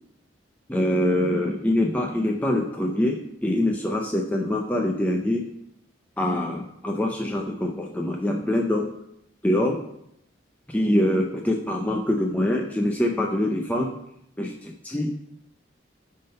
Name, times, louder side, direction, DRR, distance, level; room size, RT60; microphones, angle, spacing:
voice 1, 0.7-5.5 6.2-8.9 9.4-9.8 10.7-13.9 14.4-15.1, left 1 dB, 10° left, 0 dB, 0.6 m, -24 dB
9.5 x 3.8 x 5.3 m, 0.78 s
head